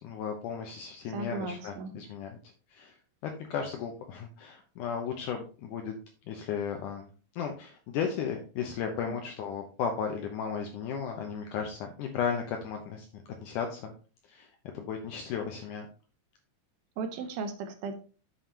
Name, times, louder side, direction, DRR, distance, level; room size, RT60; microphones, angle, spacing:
voice 1, 0.0-2.4 2.7-3.0 3.2-5.9 6.3-13.9 14.3-14.5 14.7-15.9, left 7 dB, 80° left, 3 dB, 1.9 m, -35 dB
voice 2, 1.1-1.9 17.0-17.9, right 4 dB, 75° right, 7 dB, 2.6 m, -36 dB
8.5 x 7.3 x 2.8 m, 0.36 s
omnidirectional pair, 4.6 m